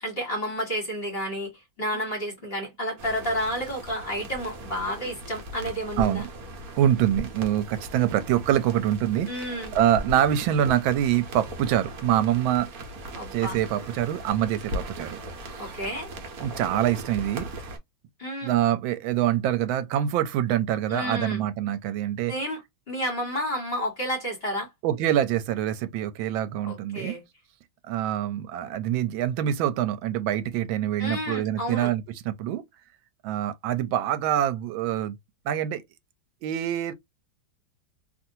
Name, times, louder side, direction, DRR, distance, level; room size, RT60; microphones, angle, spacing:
voice 1, 0.0-6.2 9.3-9.7 13.1-13.6 15.6-16.1 18.2-18.5 20.9-21.4 22.3-22.6 22.9-24.7 26.6-27.2 31.0-31.9, equal, 35° left, 1.2 m, -31 dB
sound 1, 3.0-17.8, right 1 dB, 55° right, 1.1 m, -38 dB
voice 2, 6.0-6.3 6.8-12.7 13.3-15.2 15.5-15.8 16.4-17.5 18.4-22.3 24.8-27.2 27.9-32.6 33.2-35.2 35.5-35.8 36.4-36.9, right 11 dB, 85° right, 1.3 m, -25 dB
3.0 x 2.5 x 2.6 m
omnidirectional pair, 2.1 m